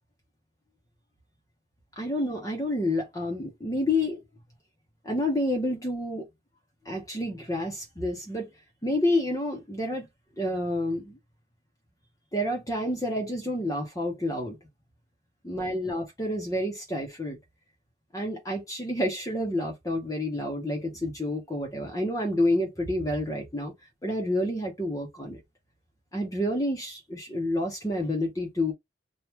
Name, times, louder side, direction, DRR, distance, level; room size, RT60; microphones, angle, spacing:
voice 1, 2.0-4.2 5.0-6.3 6.8-8.5 8.8-10.1 10.4-11.2 12.3-14.6 15.4-17.4 18.1-23.7 24.0-25.4 26.1-28.7, left 1 dB, 20° left, 0.8 m, -29 dB
2.9 x 2.4 x 3.4 m
head